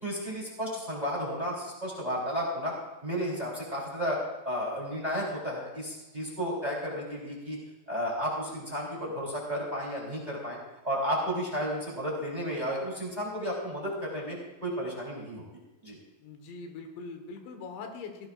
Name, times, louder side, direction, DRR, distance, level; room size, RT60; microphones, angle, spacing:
voice 1, 0.0-2.7 3.0-4.2 4.4-7.6 7.9-10.6 10.8-15.4 15.8-16.0, equal, 10° right, -4 dB, 3.3 m, -33 dB
voice 2, 16.2-18.3, left 4 dB, 85° left, 4 dB, 3.7 m, -42 dB
17.5 x 17.0 x 2.5 m, 1.1 s
omnidirectional pair, 5.1 m